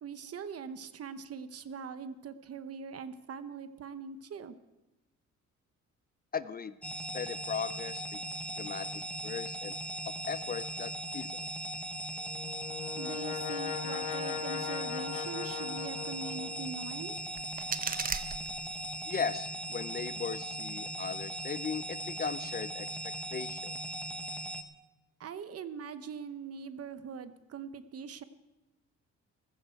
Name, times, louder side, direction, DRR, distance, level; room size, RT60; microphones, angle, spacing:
voice 1, 0.0-4.5 12.9-17.2 25.2-28.2, right 6 dB, 50° right, 12 dB, 0.9 m, -42 dB
voice 2, 6.3-6.7 7.1-8.2 8.6-8.9 9.2-9.7 10.0-11.4 19.1-22.9 23.3-23.7, left 6 dB, 30° left, 14 dB, 0.5 m, -37 dB
sound 1, 6.8-24.6, right 1 dB, 5° left, 1.0 m, -39 dB
Brass instrument, 12.1-16.9, left 9 dB, 80° left, 1.3 m, -39 dB
sound 2, 17.1-19.1, right 6 dB, 30° right, 0.7 m, -38 dB
15.5 x 13.5 x 4.6 m, 1.0 s
cardioid pair, 90°, 30 cm